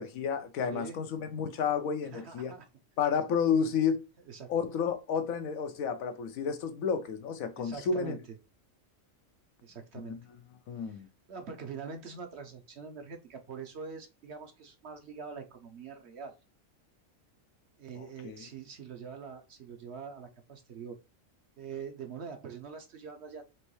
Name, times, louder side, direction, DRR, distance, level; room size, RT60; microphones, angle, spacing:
voice 1, 0.0-2.5 3.0-4.0 4.5-8.2 10.0-10.2 10.7-11.1 18.0-18.4, left 6 dB, 85° left, 1.2 m, -31 dB
voice 2, 0.7-1.0 2.1-2.7 4.3-4.5 7.5-8.4 9.6-10.2 10.9-11.0 11.3-16.3 17.8-21.0 21.6-23.5, right 6 dB, 60° right, 1.0 m, -44 dB
4.6 x 3.1 x 3.0 m
omnidirectional pair, 1.4 m